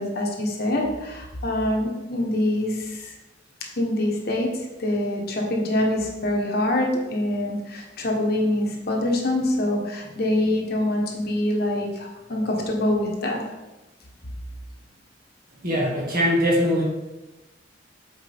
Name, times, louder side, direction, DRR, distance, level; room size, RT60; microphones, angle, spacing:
voice 1, 0.0-3.1 3.8-13.4, left 1 dB, 55° left, 0 dB, 1.2 m, -25 dB
voice 2, 15.6-16.8, equal, 50° right, -4 dB, 1.9 m, -21 dB
7.6 x 4.8 x 3.5 m, 1.1 s
head